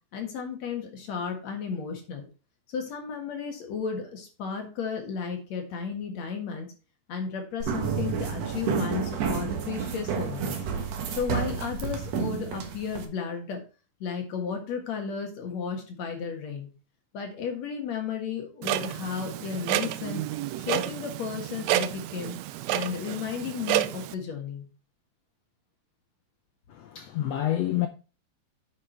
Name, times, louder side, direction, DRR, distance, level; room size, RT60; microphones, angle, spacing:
voice 1, 0.1-2.3 2.7-6.7 7.1-10.5 11.1-13.6 14.0-16.7 17.1-20.2 20.6-22.3 22.7-24.7, left 6 dB, 60° left, 2.7 m, -33 dB
sound 1, 7.6-13.0, right 6 dB, 60° right, 2.2 m, -30 dB
Clock, 18.6-24.1, right 14 dB, 85° right, 1.6 m, -30 dB
voice 2, 26.7-27.9, left 13 dB, 80° left, 1.5 m, -28 dB
8.5 x 6.0 x 4.4 m
omnidirectional pair, 3.7 m